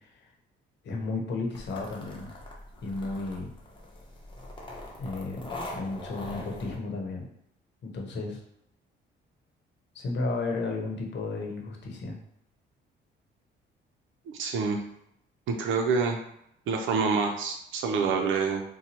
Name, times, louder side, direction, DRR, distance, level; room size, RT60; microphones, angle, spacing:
voice 1, 0.8-2.3 2.8-3.5 5.0-7.2 7.8-8.4 9.9-12.1, left 3 dB, 65° left, 0 dB, 0.9 m, -33 dB
sound 1, 1.5-6.8, left 1 dB, 25° left, 0.9 m, -42 dB
voice 2, 14.3-14.8 15.5-16.2 16.7-18.6, right 5 dB, 75° right, 3 dB, 0.5 m, -27 dB
4.1 x 2.2 x 2.8 m, 0.77 s
cardioid pair, 90°, 20 cm